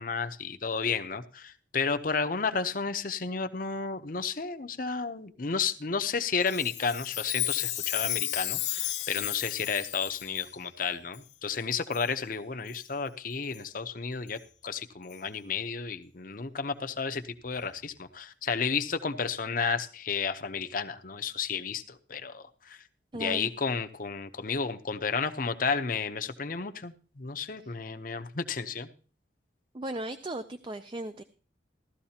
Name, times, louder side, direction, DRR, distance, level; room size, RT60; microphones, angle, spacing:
voice 1, 0.0-14.4 14.6-22.8 23.2-28.9, left 5 dB, 45° left, 8 dB, 0.8 m, -32 dB
Chime, 6.4-10.5 11.1-11.2 11.9-12.1 12.7-12.8 13.5-13.6 14.3-14.4 15.1-15.2, left 14 dB, 70° left, 1.2 m, -33 dB
voice 2, 23.1-23.5 27.6-27.8 29.7-31.2, right 1 dB, 25° right, 9 dB, 0.5 m, -36 dB
16.0 x 13.0 x 2.9 m, 0.41 s
head